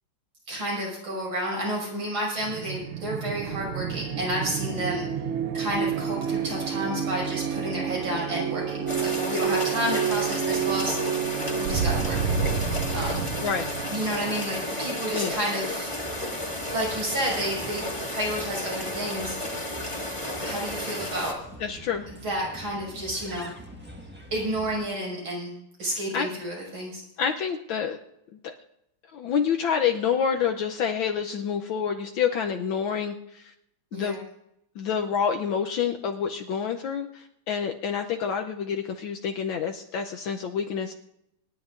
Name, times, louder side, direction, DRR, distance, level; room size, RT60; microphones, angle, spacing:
voice 1, 0.5-5.1 5.5-11.2 11.6-12.2 12.9-13.3 13.9-15.9 16.7-19.6 20.4-21.4 22.1-23.5 24.3-25.5 25.8-27.0 33.9-34.2, right 1 dB, 75° right, -3 dB, 6.5 m, -31 dB
sound 1, 2.4-15.9, right 7 dB, 90° right, 1.7 m, -30 dB
sound 2, 8.9-21.3, left 1 dB, 15° left, 1.9 m, -33 dB
Bird, 15.8-24.9, equal, 5° right, 1.2 m, -45 dB
voice 2, 21.6-22.1 26.1-26.3 27.2-28.0 28.4-28.5 29.1-33.5 33.9-34.2 34.8-40.9, left 7 dB, 75° left, 4 dB, 1.5 m, -28 dB
26.5 x 11.0 x 2.6 m, 0.79 s
omnidirectional pair, 2.3 m